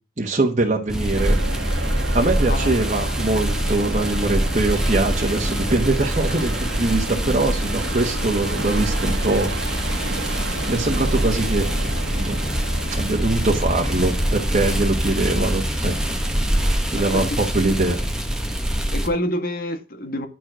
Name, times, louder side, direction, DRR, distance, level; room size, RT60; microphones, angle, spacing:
voice 1, 0.2-1.4 1.8-9.5 9.8-10.2 10.7-11.8 12.2-12.4 12.9-18.0, right 2 dB, 40° right, 1.3 m, -23 dB
sound 1, 0.9-19.1, equal, 5° right, 1.2 m, -24 dB
sound 2, 1.2-16.8, right 2 dB, 75° right, 1.6 m, -32 dB
voice 2, 16.9-17.4 17.6-17.9 18.9-20.3, left 1 dB, 50° left, 1.8 m, -28 dB
10.5 x 4.7 x 6.2 m
head